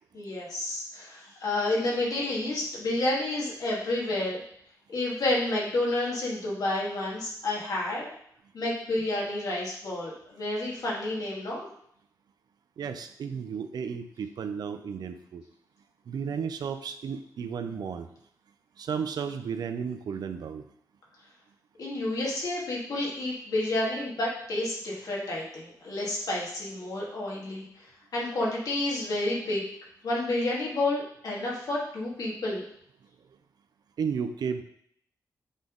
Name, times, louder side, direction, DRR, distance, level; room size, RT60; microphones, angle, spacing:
voice 1, 0.1-4.4 4.9-8.0 8.5-11.7 21.8-27.9 28.1-29.6 30.0-32.6, left 2 dB, 65° left, -4 dB, 2.0 m, -30 dB
voice 2, 12.8-15.4 16.1-18.1 18.8-20.6 34.0-34.6, right 6 dB, 80° right, 9 dB, 0.6 m, -33 dB
8.0 x 3.7 x 3.9 m, 0.69 s
wide cardioid pair, 155°, 7 cm